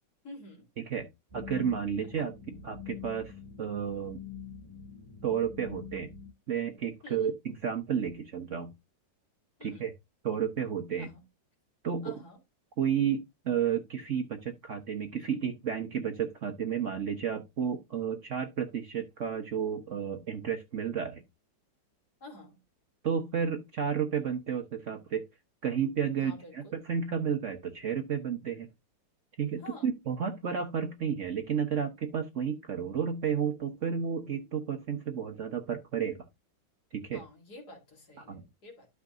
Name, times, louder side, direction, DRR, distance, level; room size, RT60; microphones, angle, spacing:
voice 1, 0.2-0.7 2.2-2.3 7.0-7.3 9.6-9.9 11.0-11.2 12.0-12.4 22.2-22.6 26.2-26.8 29.6-29.9 37.1-38.9, left 2 dB, 60° left, 2.9 m, -49 dB
voice 2, 0.9-2.3 2.6-3.3 3.6-4.2 5.2-6.1 6.5-8.7 9.6-9.9 10.2-11.1 11.8-12.1 12.8-21.2 23.0-25.3 25.6-28.7 29.4-36.2 36.9-37.2 38.2-38.4, right 7 dB, 50° right, 1.1 m, -32 dB
sound 1, 1.3-6.3, left 7 dB, 15° right, 3.9 m, -45 dB
12.0 x 5.8 x 2.5 m
omnidirectional pair, 2.0 m